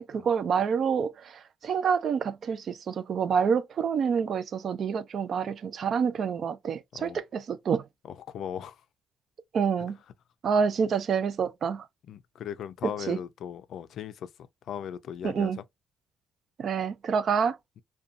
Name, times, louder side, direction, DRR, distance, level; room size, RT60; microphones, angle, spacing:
voice 1, 0.0-7.8 9.5-10.0 10.4-11.9 13.1-13.2 15.2-15.6 16.6-17.6, right 6 dB, 60° right, 0.3 m, -27 dB
voice 2, 8.1-8.7 9.8-9.9 12.1-14.3 14.7-15.6, left 9 dB, 70° left, 0.3 m, -38 dB
2.6 x 2.2 x 2.4 m
cardioid pair, 90°, 0 cm